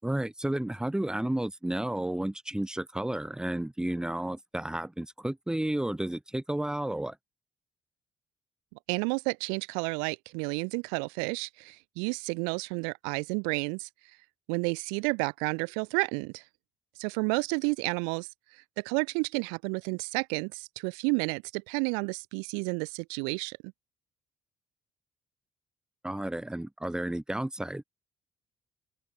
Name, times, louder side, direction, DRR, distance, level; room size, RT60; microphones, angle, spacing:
voice 1, 0.0-7.2 26.0-27.8, right 1 dB, 10° right, 7.9 m, -32 dB
voice 2, 8.9-13.9 14.5-16.4 17.0-23.7, right 40 dB or more, 85° right, 1.0 m, -31 dB
open air
hypercardioid pair, 55°, 8 cm